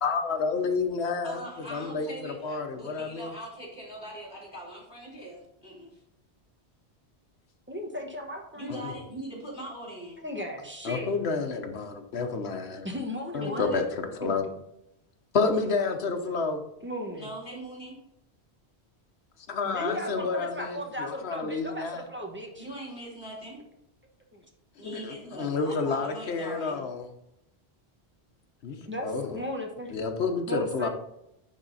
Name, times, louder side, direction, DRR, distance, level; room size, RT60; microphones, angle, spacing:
voice 1, 0.0-1.4 1.7-3.3 8.7-8.9 10.8-12.9 13.3-14.4 15.3-16.6 19.5-22.0 24.8-27.1 28.6-29.4 29.9-30.9, left 4 dB, 75° left, 5 dB, 1.2 m, -30 dB
voice 2, 1.2-6.0 8.5-10.2 13.4-13.9 17.2-18.0 22.5-23.6 24.8-26.8, right 1 dB, 45° left, -4 dB, 3.5 m, -41 dB
voice 3, 7.7-8.8 10.2-11.1 12.8-13.8 14.2-14.3 16.8-17.3 19.6-22.7 24.3-24.4 28.9-29.9 30.5-30.9, equal, 10° right, 1 dB, 1.1 m, -36 dB
10.5 x 3.7 x 4.0 m, 0.82 s
omnidirectional pair, 1.1 m